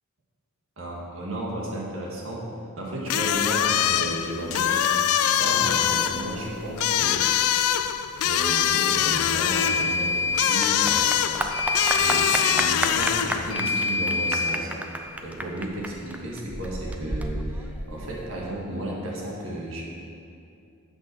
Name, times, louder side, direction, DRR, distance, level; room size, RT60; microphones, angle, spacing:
voice 1, 0.8-2.5 2.8-7.2 8.2-14.7 15.2-19.8, right 1 dB, 65° right, -4 dB, 1.9 m, -33 dB
sound 1, 3.1-13.5, left 10 dB, 90° left, 0.4 m, -24 dB
sound 2, 4.5-4.6 9.5-10.6 11.5-12.6 13.5-14.6, left 3 dB, 65° left, 1.3 m, -26 dB
Clapping / Applause, 9.5-18.5, right 1 dB, 5° right, 0.4 m, -32 dB
8.0 x 6.1 x 6.2 m, 2.6 s
head